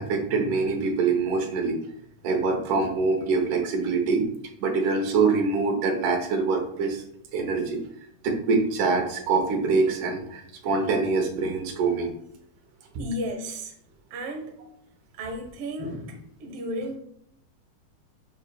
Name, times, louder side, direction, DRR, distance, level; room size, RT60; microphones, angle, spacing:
voice 1, 0.0-1.8 2.2-4.2 4.6-7.0 7.3-7.8 8.2-12.1, right 4 dB, 80° right, 4 dB, 2.5 m, -24 dB
voice 2, 13.0-13.7 14.1-14.5 15.1-17.0, equal, 60° right, 3 dB, 1.8 m, -33 dB
11.5 x 4.2 x 2.3 m, 0.70 s
omnidirectional pair, 3.5 m